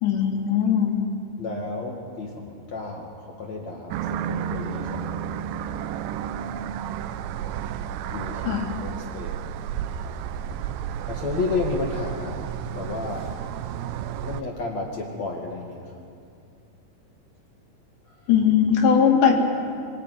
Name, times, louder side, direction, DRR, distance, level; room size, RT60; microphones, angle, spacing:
voice 1, 0.0-1.0 8.5-8.7 18.3-19.4, left 7 dB, 75° left, -1 dB, 4.9 m, -19 dB
voice 2, 1.4-5.2 8.1-9.5 11.1-13.6 14.2-16.1, left 3 dB, 45° left, 0 dB, 2.9 m, -32 dB
sound 1, 3.9-14.4, right 9 dB, 85° right, 3.0 m, -32 dB
25.0 x 21.5 x 9.5 m, 2.4 s
omnidirectional pair, 4.9 m